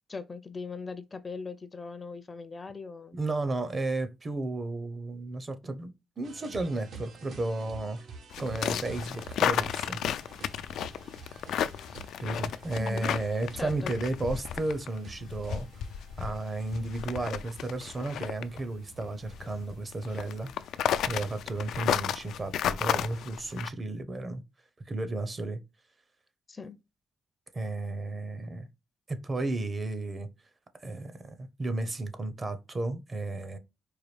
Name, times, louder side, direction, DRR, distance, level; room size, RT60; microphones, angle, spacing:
voice 1, 0.1-3.2 12.8-13.2 13.6-13.9 26.5-26.8, left 4 dB, 30° left, 0.5 m, -40 dB
voice 2, 3.1-8.0 8.4-10.0 12.2-15.7 16.2-20.7 21.1-24.4 24.9-25.6 27.5-28.7 29.1-30.3 30.8-33.6, right 2 dB, 30° right, 0.7 m, -33 dB
sound 1, 6.2-22.1, right 4 dB, 65° right, 1.0 m, -49 dB
sound 2, 8.3-23.7, left 9 dB, 80° left, 0.3 m, -33 dB
4.7 x 2.3 x 3.2 m
cardioid pair, 90°, 0 cm